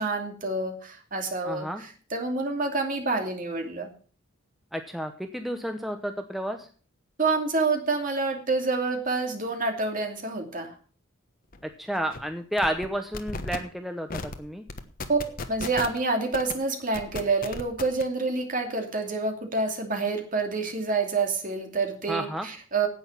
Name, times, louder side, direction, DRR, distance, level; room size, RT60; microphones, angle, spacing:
voice 1, 0.0-3.9 7.2-10.7 15.1-22.9, right 3 dB, 45° right, 3 dB, 2.6 m, -28 dB
voice 2, 1.4-1.8 4.7-6.7 11.6-14.6 22.1-22.5, equal, ahead, 5 dB, 0.8 m, -31 dB
sound 1, 11.5-11.6 11.9-12.2 12.6-12.9 13.1-13.6 14.1-14.4 14.7-16.0 16.3-16.5 16.9-18.0, left 3 dB, 45° left, 1.2 m, -34 dB
10.0 x 8.8 x 7.2 m, 0.42 s
head